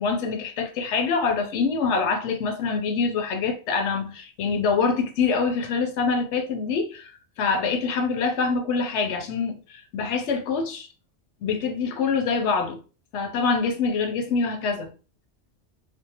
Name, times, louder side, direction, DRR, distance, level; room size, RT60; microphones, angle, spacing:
voice 1, 0.0-7.1 7.4-10.9 11.4-12.8 13.1-14.9, left 5 dB, 80° left, 0.9 m, -25 dB
2.6 x 2.0 x 2.7 m
omnidirectional pair, 1.2 m